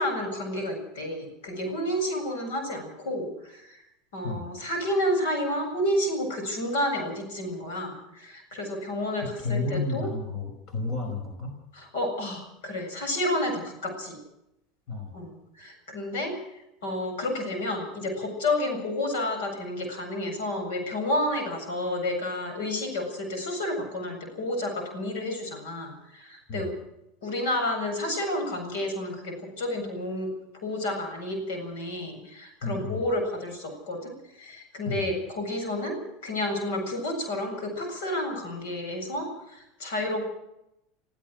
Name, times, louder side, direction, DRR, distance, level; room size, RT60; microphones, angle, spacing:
voice 1, 0.0-3.8 4.1-10.1 11.7-14.2 15.1-15.3 15.6-16.4 16.8-26.7 27.2-30.3 30.6-36.0 36.2-40.2, left 1 dB, 75° left, 4 dB, 7.6 m, -30 dB
voice 2, 9.2-11.6 14.9-15.1 26.5-26.7 32.6-33.1 34.9-35.0, left 3 dB, 45° left, 5 dB, 5.1 m, -32 dB
28.0 x 15.5 x 6.4 m, 0.84 s
hypercardioid pair, 90°, 0 cm